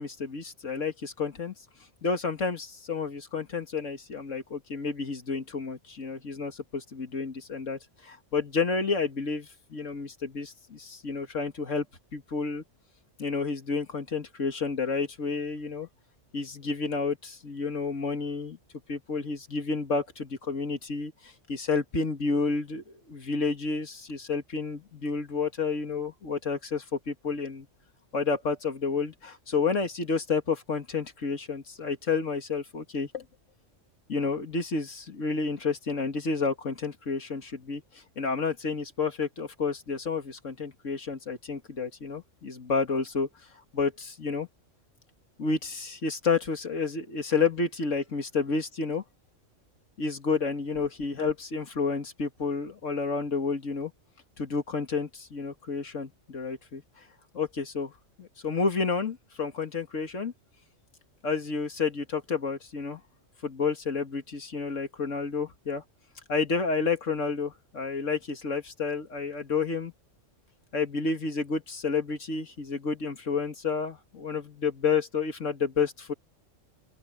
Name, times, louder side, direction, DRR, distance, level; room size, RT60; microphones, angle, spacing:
voice 1, 0.0-1.5 2.0-11.9 12.1-12.6 13.2-15.9 16.3-18.6 18.9-27.7 28.1-33.2 34.1-37.8 38.2-43.3 43.7-44.5 45.4-49.0 50.0-53.9 54.4-56.8 57.3-57.9 58.2-60.3 61.2-63.0 63.4-65.8 66.3-69.9 70.7-76.1, left 4 dB, 80° left, 2.5 m, -30 dB
open air
omnidirectional pair, 1.3 m